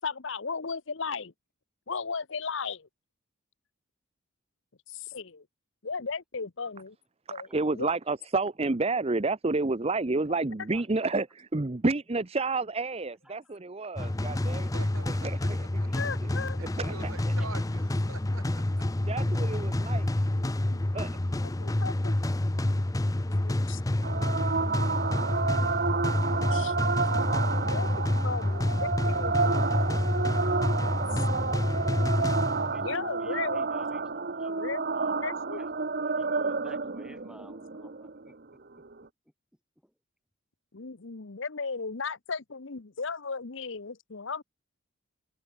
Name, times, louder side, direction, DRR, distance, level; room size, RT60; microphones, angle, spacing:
voice 1, 0.0-1.3 1.9-2.8 5.1-5.4 5.8-6.9 7.3-7.5 7.7-7.9 14.7-15.1 15.9-16.6 20.4-20.8 21.6-22.1 23.4-23.8 26.3-26.8 27.6-29.9 32.8-33.7 34.5-35.6 40.7-44.4, left 5 dB, 60° left, 0.9 m, -36 dB
voice 2, 7.3-14.7 15.1-15.7 16.2-16.3 16.6-17.3 19.0-20.1 20.9-21.2, right 3 dB, 30° right, 0.7 m, -30 dB
sound 1, 14.0-32.9, left 1 dB, 15° left, 0.5 m, -28 dB
voice 3, 14.7-15.5 15.8-15.9 16.4-18.8, right 3 dB, 75° right, 7.3 m, -45 dB
voice 4, 15.7-16.1 32.5-32.9 33.2-34.6 34.9-35.1 35.5-38.8 39.8-39.9, equal, 5° right, 4.7 m, -53 dB
sound 2, 24.0-39.0, right 4 dB, 45° right, 1.1 m, -30 dB
head